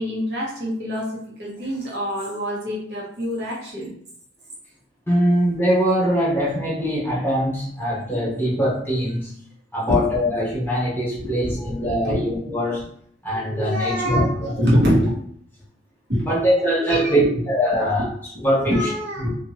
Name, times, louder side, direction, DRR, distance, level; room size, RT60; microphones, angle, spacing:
voice 1, 0.0-3.9 9.9-10.0 11.1-12.2 13.3-15.2 16.1-16.3 16.8-17.3 18.0-18.1 18.3-19.4, equal, 70° right, -5 dB, 1.1 m, -24 dB
voice 2, 5.1-9.3 9.7-12.8 13.2-14.2 16.2-18.1 18.4-18.7, equal, 15° left, -7 dB, 1.0 m, -22 dB
2.8 x 2.6 x 2.8 m, 0.64 s
head